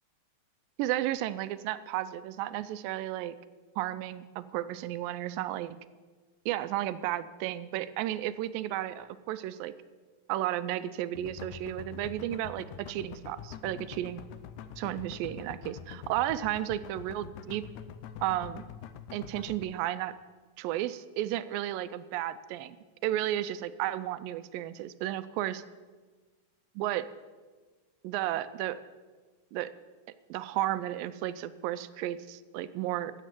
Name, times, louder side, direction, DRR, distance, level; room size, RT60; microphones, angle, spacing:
voice 1, 0.8-3.4 3.8-5.8 6.5-9.7 10.3-14.2 14.8-17.6 18.2-18.6 19.1-20.1 20.6-22.8 23.0-25.6 26.8-27.1 28.0-28.8 29.5-29.7 30.3-33.1, right 13 dB, 85° right, 14 dB, 2.3 m, -33 dB
sound 1, 11.2-19.6, left 8 dB, 80° left, 1.7 m, -45 dB
13.5 x 7.9 x 7.5 m, 1.4 s
omnidirectional pair, 4.0 m